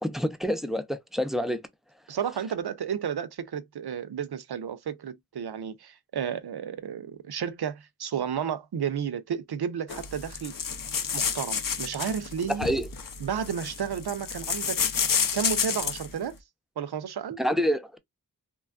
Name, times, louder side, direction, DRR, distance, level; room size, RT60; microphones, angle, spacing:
voice 1, 0.0-1.6 12.6-12.9 17.4-18.0, equal, ahead, 0.4 m, -27 dB
voice 2, 2.1-10.5 11.1-12.7 13.2-14.8 15.3-16.4 16.8-17.4, right 8 dB, 85° right, 0.5 m, -32 dB
sound 1, 9.9-16.1, left 7 dB, 60° left, 0.5 m, -30 dB
3.1 x 2.3 x 2.3 m
wide cardioid pair, 40°, 38 cm